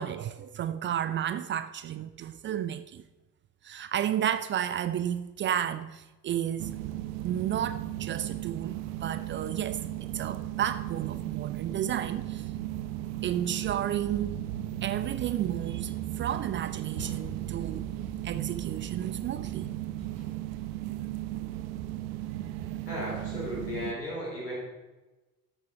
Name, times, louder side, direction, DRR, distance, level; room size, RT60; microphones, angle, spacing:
voice 1, 0.0-3.0 3.6-6.8 7.2-12.5 13.2-14.4 14.8-17.8 18.2-19.7 21.3-21.4, right 10 dB, 25° right, 0.4 m, -32 dB
sound 1, 6.6-23.9, right 13 dB, 55° right, 0.9 m, -36 dB
sound 2, 15.2-15.4 16.0-20.3, right 4 dB, 80° right, 3.1 m, -47 dB
voice 2, 22.9-24.5, left 1 dB, 85° left, 4.3 m, -35 dB
13.5 x 8.3 x 4.7 m
figure-of-eight pair, 60°, 47 cm